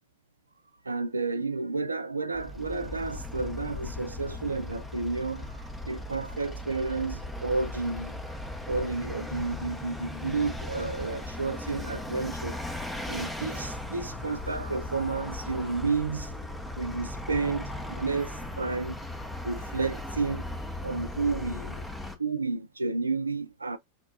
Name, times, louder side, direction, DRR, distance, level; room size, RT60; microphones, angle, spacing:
voice 1, 0.9-8.4 8.7-12.6 13.1-16.3 16.8-19.0 19.4-20.5 20.8-21.8 22.2-23.8, right 3 dB, 80° right, 0.3 m, -31 dB
Vehicle, 2.3-22.2, left 1 dB, 5° left, 0.5 m, -37 dB
5.3 x 2.2 x 2.3 m
figure-of-eight pair, 90°, 0 cm